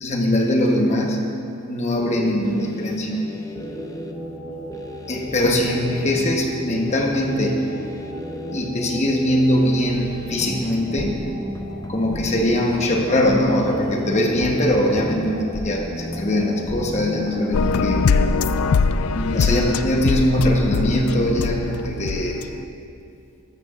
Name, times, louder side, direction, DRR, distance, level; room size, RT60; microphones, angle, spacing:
voice 1, 0.0-1.2 1.7-3.1 5.1-7.6 8.5-11.2 11.9-18.1 19.1-22.4, left 1 dB, 35° left, 1 dB, 1.0 m, -21 dB
sound 1, 2.0-18.3, left 1 dB, 15° left, 0.4 m, -34 dB
sound 2, 4.1-22.4, right 1 dB, 20° right, 2.8 m, -42 dB
sound 3, 17.5-22.5, left 4 dB, 85° left, 0.4 m, -22 dB
14.0 x 12.5 x 2.4 m, 2.6 s
head